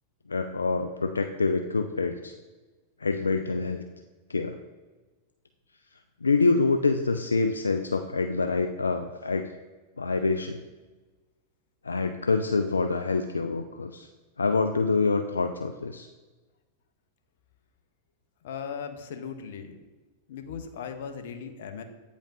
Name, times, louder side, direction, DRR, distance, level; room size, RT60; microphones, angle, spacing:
voice 1, 0.3-2.3 3.0-3.8 4.3-4.6 6.2-9.5 10.0-10.6 11.8-14.1 14.4-16.1, left 3 dB, 90° left, 6 dB, 0.3 m, -26 dB
voice 2, 18.4-19.8 20.3-21.8, left 7 dB, 65° left, 7 dB, 0.7 m, -38 dB
8.7 x 5.1 x 2.6 m, 1.2 s
hypercardioid pair, 95°, 0 cm